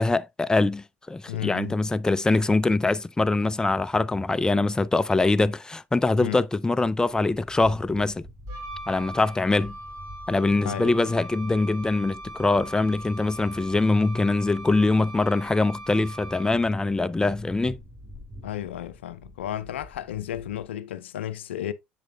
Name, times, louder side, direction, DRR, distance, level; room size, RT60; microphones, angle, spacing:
voice 1, 0.0-8.3 8.9-9.8 10.3-17.8, left 3 dB, 10° left, 0.4 m, -23 dB
voice 2, 1.3-1.8 6.2-6.4 10.6-11.1 18.4-21.7, left 12 dB, 85° left, 0.5 m, -33 dB
sound 1, 6.8-20.7, equal, 5° right, 4.6 m, -48 dB
Wind instrument woodwind instrument, 8.5-16.8, right 1 dB, 65° right, 3.0 m, -40 dB
7.5 x 7.5 x 2.3 m
hypercardioid pair, 65°, 6 cm